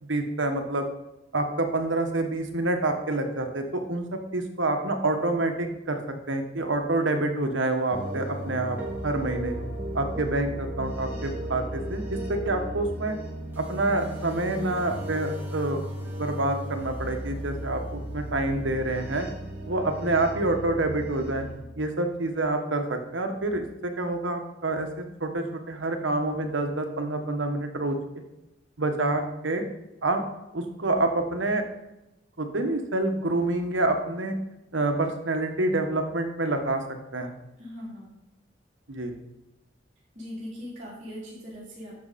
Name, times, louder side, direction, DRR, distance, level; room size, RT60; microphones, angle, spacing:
voice 1, 0.0-0.8 1.3-6.0 6.3-8.8 9.0-9.6 9.9-13.1 13.6-19.3 19.7-21.5 21.7-28.0 28.8-29.6 30.0-30.2 30.5-31.6 32.4-34.4 34.7-36.8 37.1-37.3 38.9-39.2, right 2 dB, 85° right, 5 dB, 1.4 m, -27 dB
sound 1, 7.9-21.5, right 1 dB, 10° right, 2.4 m, -35 dB
voice 2, 37.6-38.1 40.2-41.9, equal, 40° right, -11 dB, 3.4 m, -40 dB
11.5 x 6.8 x 4.2 m, 0.94 s
head